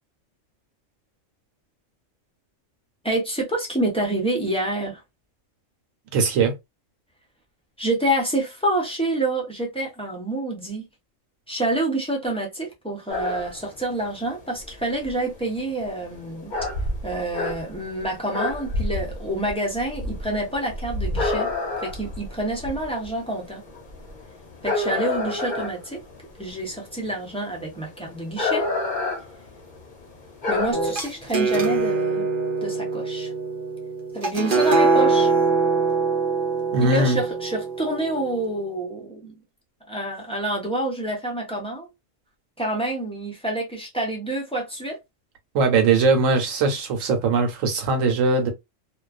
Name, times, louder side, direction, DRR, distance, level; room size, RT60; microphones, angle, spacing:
voice 1, 3.0-5.0 7.8-10.9 11.5-16.5 17.0-21.5 21.8-23.6 24.6-26.0 26.4-28.7 30.5-32.3 32.6-33.3 34.1-35.3 36.8-39.3 39.9-41.9 42.6-45.0, right 1 dB, 5° left, 0.5 m, -27 dB
voice 2, 6.1-6.5 36.7-37.2 45.5-48.5, right 4 dB, 90° right, 1.1 m, -20 dB
sound 1, 13.1-31.9, left 2 dB, 45° left, 0.8 m, -30 dB
sound 2, 30.7-38.4, right 4 dB, 50° right, 0.8 m, -23 dB
2.4 x 2.3 x 2.3 m
omnidirectional pair, 1.3 m